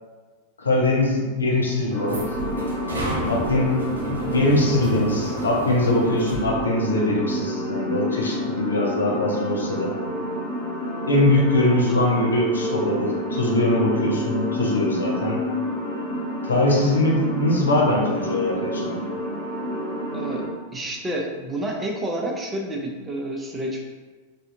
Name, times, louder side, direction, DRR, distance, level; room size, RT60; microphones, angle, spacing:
voice 1, 0.6-2.4 3.3-3.7 4.1-9.9 11.1-15.4 16.4-19.0, left 1 dB, 75° left, -2 dB, 0.7 m, -22 dB
sound 1, 1.4-6.6, right 2 dB, 75° right, 0.6 m, -33 dB
sound 2, 1.9-20.5, left 1 dB, 30° left, 1.4 m, -29 dB
voice 2, 20.1-20.4 20.7-23.8, right 1 dB, 15° right, 0 dB, 0.5 m, -29 dB
3.3 x 2.6 x 2.6 m, 1.3 s
figure-of-eight pair, 90°, 0 cm